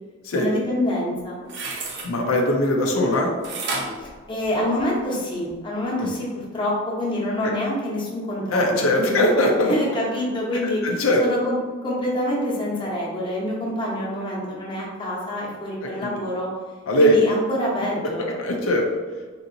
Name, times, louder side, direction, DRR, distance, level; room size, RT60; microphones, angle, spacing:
voice 1, 0.3-1.4 4.0-9.2 9.6-11.6 11.8-16.5 17.0-18.3, left 1 dB, 25° left, -4 dB, 0.8 m, -26 dB
sound 1, 1.1-2.1 3.4-5.0 5.5-5.6, right 3 dB, 60° right, 0.6 m, -31 dB
voice 2, 2.0-3.3 6.0-6.1 7.4-7.5 8.5-9.7 10.8-11.2 16.0-16.1 16.9-17.2 18.4-18.8, left 1 dB, 85° left, 1 dB, 0.5 m, -20 dB
3.8 x 2.8 x 2.5 m, 1.4 s
head